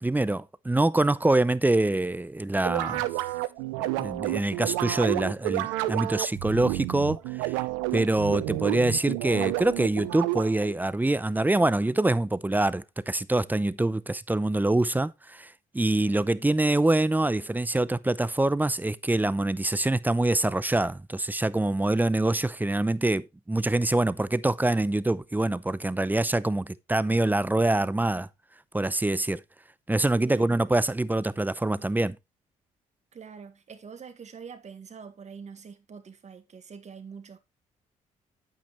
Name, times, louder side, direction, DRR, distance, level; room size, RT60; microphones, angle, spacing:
voice 1, 0.0-3.1 3.8-7.6 7.9-28.3 28.7-29.4 29.9-32.2, right 2 dB, 10° right, 0.6 m, -25 dB
sound 1, 2.6-10.7, right 18 dB, 90° right, 0.6 m, -30 dB
voice 2, 30.2-30.6 33.1-37.4, right 6 dB, 45° right, 1.7 m, -44 dB
8.8 x 8.1 x 3.1 m
supercardioid pair, 55°, 16 cm